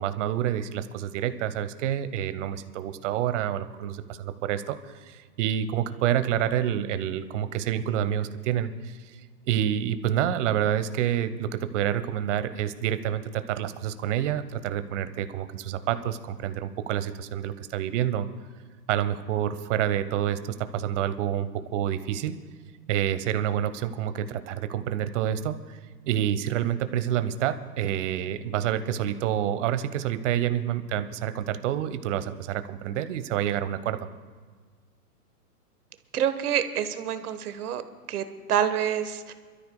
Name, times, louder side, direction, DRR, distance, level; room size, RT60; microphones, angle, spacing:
voice 1, 0.0-9.0 9.5-18.3 18.9-22.3 22.9-25.8 26.1-34.0, right 10 dB, 50° right, 12 dB, 1.0 m, -28 dB
voice 2, 36.1-37.8 38.1-39.3, right 9 dB, 70° right, 10 dB, 1.2 m, -27 dB
28.5 x 13.0 x 2.2 m, 1.5 s
hypercardioid pair, 120°, 47 cm